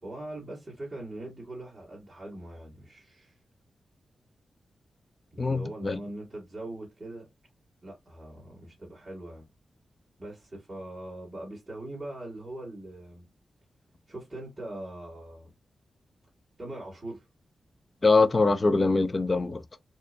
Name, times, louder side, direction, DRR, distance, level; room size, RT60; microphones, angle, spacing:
voice 1, 0.0-3.4 5.3-7.3 7.8-9.4 10.2-13.3 14.1-15.5 16.6-17.3, right 1 dB, 15° right, 2.0 m, -41 dB
voice 2, 5.4-6.0 18.0-19.6, left 3 dB, 30° left, 0.5 m, -23 dB
4.4 x 2.9 x 2.5 m
wide cardioid pair, 140°, 0 cm